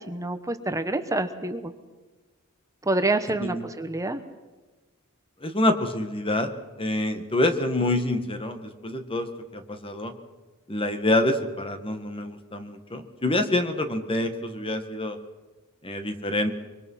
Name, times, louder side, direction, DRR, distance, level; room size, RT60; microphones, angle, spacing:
voice 1, 0.1-1.7 2.8-4.2, right 2 dB, 15° right, 9 dB, 1.1 m, -27 dB
voice 2, 5.4-6.5 6.8-10.1 10.7-15.2 15.8-16.5, left 1 dB, 25° left, 7 dB, 1.9 m, -26 dB
24.5 x 24.0 x 5.7 m, 1.2 s
head